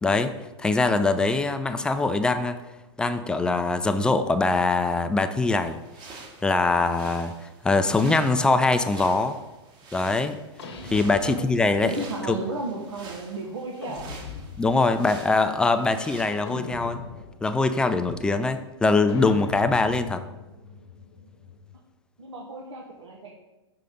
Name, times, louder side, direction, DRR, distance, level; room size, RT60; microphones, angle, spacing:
voice 1, 0.0-2.6 3.0-5.8 6.4-9.4 9.9-10.4 10.9-11.9 12.3-12.4 14.6-17.0 17.4-20.2, left 3 dB, 5° left, 9 dB, 0.3 m, -23 dB
sound 1, 5.5-16.2, right 3 dB, 30° right, 1.2 m, -46 dB
sound 2, 10.6-11.9 13.8-14.9 16.5-17.5 19.1-21.8, left 4 dB, 65° left, 1.0 m, -40 dB
voice 2, 11.8-14.1 22.2-23.3, right 2 dB, 80° right, -2 dB, 1.0 m, -33 dB
5.6 x 4.9 x 3.9 m, 1.1 s
hypercardioid pair, 110°, 15 cm